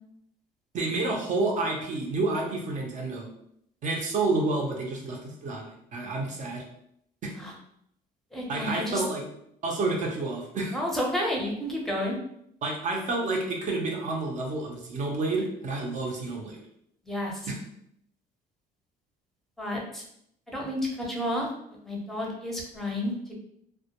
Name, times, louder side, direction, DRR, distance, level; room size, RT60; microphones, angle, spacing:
voice 1, 0.7-3.3 3.8-6.6 7.2-7.3 8.5-9.2 9.6-10.8 12.6-16.6 17.5-17.6, right 3 dB, 45° right, 0 dB, 0.6 m, -29 dB
voice 2, 8.3-9.0 10.7-12.2 17.1-17.4 19.6-20.0 20.5-21.5 21.8-23.3, left 1 dB, ahead, -2 dB, 0.6 m, -31 dB
2.1 x 2.1 x 2.8 m, 0.73 s
cardioid pair, 110°, 17 cm